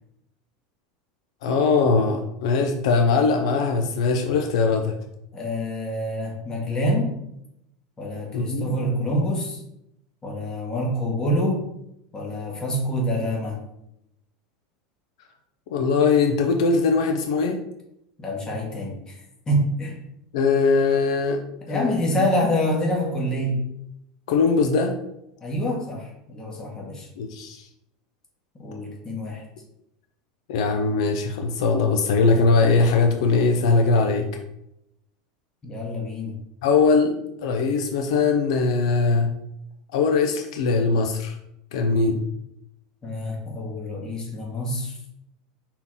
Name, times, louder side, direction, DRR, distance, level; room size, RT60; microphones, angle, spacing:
voice 1, 1.4-4.9 8.3-8.8 15.7-17.6 20.3-21.4 21.7-22.3 24.3-25.0 27.2-27.7 30.5-34.3 36.6-37.1 37.4-39.3 39.9-41.4 41.7-42.2, left 4 dB, 75° left, 4 dB, 0.8 m, -21 dB
voice 2, 5.3-7.1 8.0-9.6 10.2-11.6 12.1-13.6 18.2-19.2 19.5-20.0 21.7-23.6 25.4-27.1 28.6-29.4 35.6-36.4 43.0-45.0, equal, 20° left, 0 dB, 1.8 m, -26 dB
5.6 x 4.5 x 3.8 m, 0.80 s
supercardioid pair, 130°, 3 cm